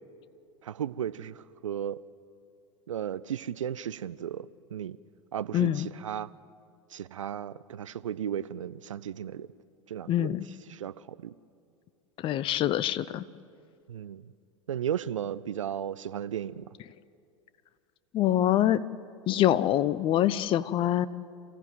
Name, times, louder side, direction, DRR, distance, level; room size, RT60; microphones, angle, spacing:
voice 1, 0.6-2.0 2.9-5.0 5.3-6.3 6.9-9.5 9.9-10.4 10.7-11.3 13.9-14.3 14.7-16.7, right 9 dB, 70° right, 0.6 m, -35 dB
voice 2, 5.5-5.9 10.1-10.4 12.2-13.2 18.1-18.8 19.3-21.1, left 12 dB, 30° left, 0.6 m, -25 dB
28.0 x 15.0 x 9.1 m
figure-of-eight pair, 85°, 17 cm